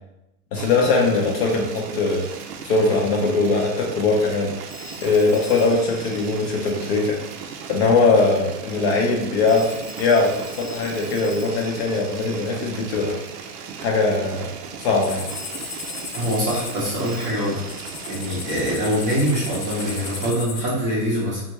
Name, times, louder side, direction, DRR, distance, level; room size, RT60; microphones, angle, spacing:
voice 1, 0.5-2.3 2.6-4.5 5.0-7.2 7.7-13.2 13.8-14.5 14.8-15.3, left 3 dB, 45° left, 0 dB, 0.5 m, -21 dB
sound 1, 0.5-20.3, right 6 dB, 80° right, 0.6 m, -37 dB
Telephone, 4.7-7.3 9.5-13.1 15.3-18.8, left 4 dB, 10° left, 0.8 m, -44 dB
sound 2, 15.0-20.6, left 5 dB, 75° left, 0.8 m, -36 dB
voice 2, 16.1-17.8 18.1-21.4, equal, 20° right, -6 dB, 0.5 m, -24 dB
3.5 x 2.3 x 2.9 m, 0.92 s
supercardioid pair, 155°, 47 cm